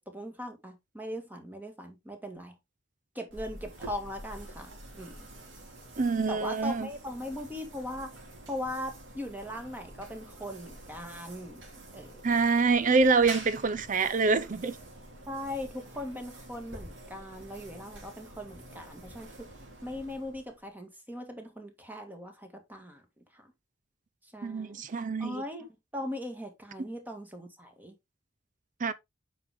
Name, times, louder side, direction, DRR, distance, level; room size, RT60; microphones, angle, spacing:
voice 1, 0.0-2.5 3.2-5.3 6.3-8.1 8.5-11.6 11.9-12.2 15.3-19.5 19.8-23.0 23.3-23.5 24.2-24.8 25.2-25.7 25.9-27.9, left 1 dB, 10° right, 1.9 m, -39 dB
sound 1, 3.3-20.7, right 1 dB, 70° right, 3.2 m, -47 dB
voice 2, 6.0-6.9 12.2-14.8 24.4-25.4 28.8-28.9, right 4 dB, 40° right, 0.5 m, -26 dB
8.5 x 5.3 x 3.5 m
head